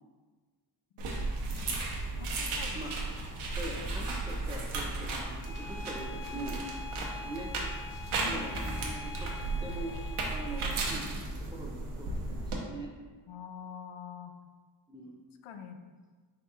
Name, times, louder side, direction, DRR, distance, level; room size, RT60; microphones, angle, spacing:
sound 1, 1.0-12.6, right 2 dB, 85° right, 0.9 m, -35 dB
voice 1, 2.2-2.8 8.2-8.5 13.3-14.3 15.4-15.8, left 6 dB, 80° left, 6 dB, 0.5 m, -44 dB
voice 2, 3.6-7.5 8.2-9.3 9.6-11.1 11.4-12.9 14.9-15.1, right 1 dB, 10° right, -2 dB, 0.3 m, -43 dB
Bowed string instrument, 5.4-11.0, left 4 dB, 40° left, 0.7 m, -46 dB
4.8 x 2.3 x 4.2 m, 1.4 s
wide cardioid pair, 135°, 48 cm